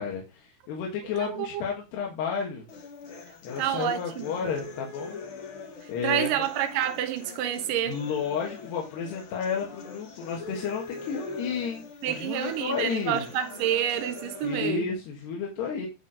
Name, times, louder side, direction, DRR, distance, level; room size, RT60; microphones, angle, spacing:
voice 1, 0.0-2.7 3.4-5.2 5.9-6.5 7.8-13.3 14.4-15.9, left 6 dB, 80° left, 3.8 m, -32 dB
voice 2, 1.2-1.6 3.6-4.3 5.8-8.0 12.0-14.9, right 11 dB, 70° right, 2.4 m, -28 dB
sound 1, 2.7-14.7, left 4 dB, 55° left, 1.5 m, -43 dB
11.0 x 4.5 x 5.0 m
omnidirectional pair, 4.7 m